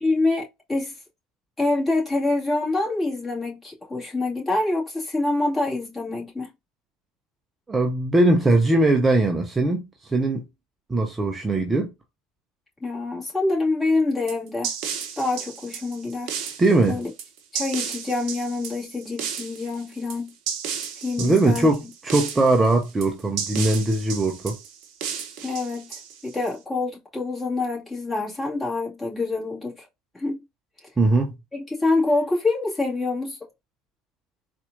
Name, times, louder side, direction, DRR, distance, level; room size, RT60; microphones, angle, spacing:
voice 1, 0.0-0.9 1.6-6.5 12.8-14.7 15.2-16.3 16.9-17.1 17.5-20.3 21.0-21.7 25.4-29.9 30.1-30.4 31.5-33.4, left 2 dB, 15° left, 2.1 m, -26 dB
voice 2, 7.7-10.4 10.9-11.9 16.6-17.0 21.2-24.6 31.0-31.3, right 2 dB, 15° right, 0.7 m, -20 dB
sound 1, 14.3-26.5, right 7 dB, 55° right, 0.8 m, -33 dB
4.2 x 2.6 x 2.5 m
figure-of-eight pair, 70°, 0 cm